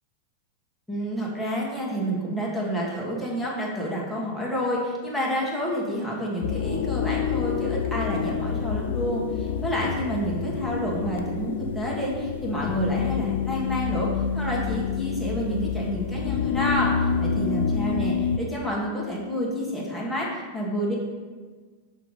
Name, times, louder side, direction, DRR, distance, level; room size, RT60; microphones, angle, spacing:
voice 1, 0.9-21.0, equal, 5° left, -5 dB, 1.8 m, -29 dB
sound 1, 6.4-18.4, left 7 dB, 75° left, 0.4 m, -27 dB
5.7 x 3.2 x 5.5 m, 1.4 s
hypercardioid pair, 105°, 0 cm